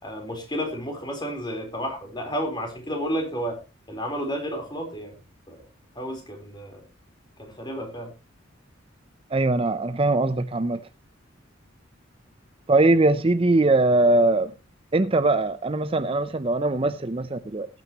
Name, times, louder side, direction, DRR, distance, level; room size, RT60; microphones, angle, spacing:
voice 1, 0.0-3.6 3.9-5.1 5.5-5.6 6.0-6.8 7.4-8.1, equal, 20° left, 4.0 m, -31 dB
voice 2, 9.3-10.9 12.7-14.5 14.9-17.7, right 2 dB, 30° right, 0.6 m, -21 dB
19.0 x 9.3 x 3.0 m
head